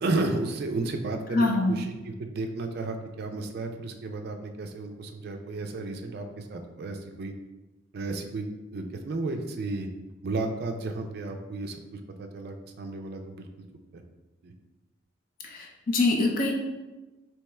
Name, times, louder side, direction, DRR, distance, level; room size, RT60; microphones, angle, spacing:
voice 1, 0.0-7.3 7.9-9.9 10.2-13.5 13.9-14.0 14.4-14.5, right 2 dB, 50° right, 5 dB, 0.4 m, -33 dB
voice 2, 1.3-1.7 15.4-16.5, left 2 dB, 45° left, 1 dB, 0.5 m, -24 dB
3.3 x 2.9 x 3.2 m, 1.1 s
head